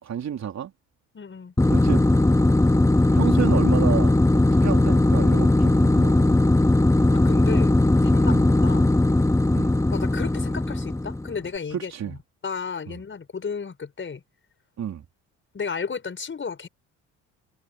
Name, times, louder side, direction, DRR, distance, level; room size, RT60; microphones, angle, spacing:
voice 1, 0.0-0.7 1.7-2.0 3.1-6.4 8.3-8.5 9.5-9.8 11.7-12.1 12.9-13.0 14.8-15.1, right 9 dB, 50° right, 3.4 m, -30 dB
voice 2, 1.1-1.5 7.1-7.8 8.0-8.9 9.9-12.2 12.4-14.2 15.5-16.7, left 5 dB, 35° left, 6.2 m, -33 dB
sound 1, 1.6-11.4, left 2 dB, 10° left, 2.8 m, -19 dB
supercardioid pair, 70°, 34 cm